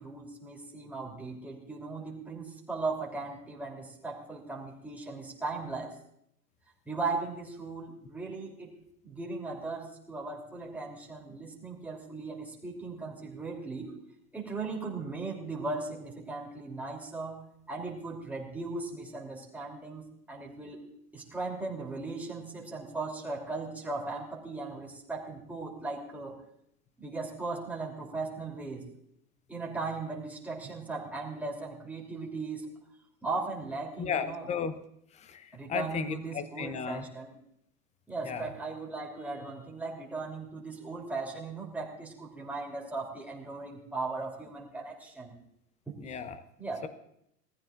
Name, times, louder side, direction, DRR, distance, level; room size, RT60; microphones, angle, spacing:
voice 1, 0.0-6.0 6.8-8.7 9.0-14.0 14.3-20.8 21.1-26.4 27.0-28.9 29.5-32.7 33.2-34.5 35.5-37.3 38.1-45.3 45.9-46.0 46.6-46.9, right 3 dB, 5° right, -2 dB, 3.2 m, -38 dB
voice 2, 34.0-34.8 35.1-37.0 38.2-38.5 46.0-46.4, left 6 dB, 15° left, 12 dB, 0.8 m, -35 dB
21.0 x 14.5 x 2.5 m, 0.73 s
figure-of-eight pair, 105°, 48 cm